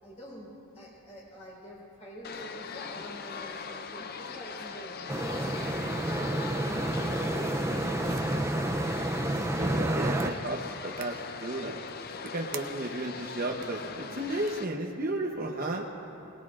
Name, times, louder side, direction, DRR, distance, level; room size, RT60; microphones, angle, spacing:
voice 1, 0.0-5.8 6.1-7.9, equal, 30° left, -5 dB, 4.2 m, -45 dB
sound 1, 2.2-14.6, left 5 dB, 45° left, 0.5 m, -40 dB
sound 2, 5.1-10.3, right 1 dB, 10° right, 0.4 m, -30 dB
sound 3, 7.4-8.2 9.2-9.7 10.2-10.3 11.0-11.1 11.8-13.0 13.6-13.7 14.4-14.5, right 10 dB, 80° right, 0.7 m, -47 dB
voice 2, 9.6-11.8 12.3-15.9, right 1 dB, 40° right, -1 dB, 0.9 m, -33 dB
21.5 x 19.5 x 2.5 m, 2.9 s
head